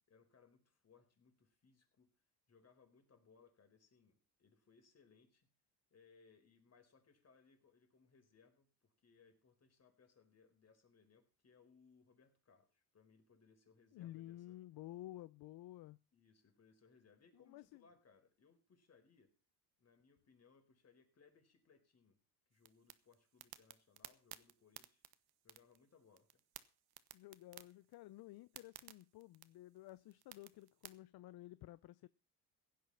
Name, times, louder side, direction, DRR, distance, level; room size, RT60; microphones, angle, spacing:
voice 1, 0.1-2.1 2.5-5.5 5.9-14.6 16.1-19.3 19.8-22.2 22.5-25.0 25.4-26.4, left 5 dB, 40° left, 4.6 m, -69 dB
voice 2, 13.9-16.0 17.3-17.8 27.1-32.1, left 15 dB, 65° left, 0.7 m, -53 dB
sound 1, 22.5-30.9, right 14 dB, 65° right, 1.2 m, -58 dB
16.0 x 9.5 x 5.7 m
cardioid pair, 95°, 40 cm